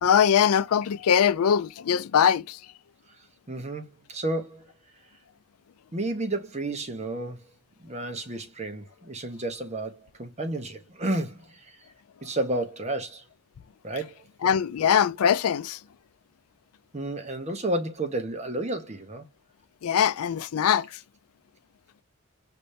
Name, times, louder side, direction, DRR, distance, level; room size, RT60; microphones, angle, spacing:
voice 1, 0.0-2.6 14.4-15.8 19.8-20.9, left 8 dB, 85° left, 0.4 m, -22 dB
voice 2, 3.5-4.7 5.9-7.5 7.8-11.8 12.2-13.2 13.8-14.2 16.9-19.2, right 2 dB, 30° right, 1.0 m, -31 dB
5.1 x 3.3 x 2.7 m
head